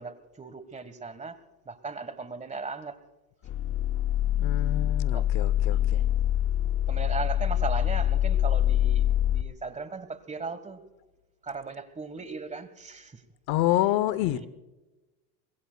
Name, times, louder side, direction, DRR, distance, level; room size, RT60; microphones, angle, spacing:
voice 1, 0.0-1.4 1.7-3.0 5.1-5.3 5.9-6.0 6.9-10.8 11.4-13.1 14.2-14.5, right 4 dB, 15° right, 13 dB, 1.3 m, -37 dB
sound 1, 3.5-9.4, left 11 dB, 30° left, 0.5 m, -25 dB
voice 2, 4.4-6.0 13.5-14.5, left 15 dB, 60° left, 17 dB, 0.8 m, -27 dB
25.0 x 21.0 x 2.3 m, 1.1 s
supercardioid pair, 115°, 44 cm